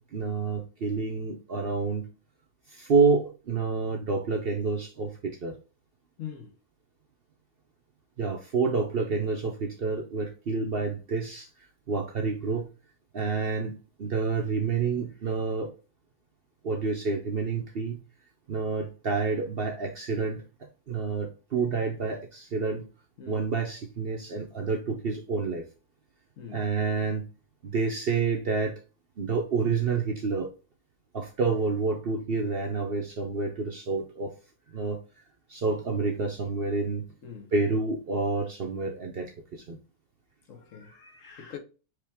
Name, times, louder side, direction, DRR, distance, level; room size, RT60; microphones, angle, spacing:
voice 1, 0.0-2.1 2.7-5.6 8.2-11.5 11.9-12.7 13.1-15.7 16.6-18.0 18.5-20.4 20.9-22.8 23.3-25.6 26.5-27.2 27.6-28.8 29.2-30.5 31.1-34.3 34.7-35.0 35.5-37.0 37.5-39.8, right 4 dB, 50° right, 0.8 m, -28 dB
voice 2, 6.2-6.5 23.2-23.4 26.4-26.6 37.2-37.5 40.5-41.6, left 8 dB, 65° left, 1.2 m, -43 dB
4.9 x 2.9 x 3.4 m
omnidirectional pair, 1.5 m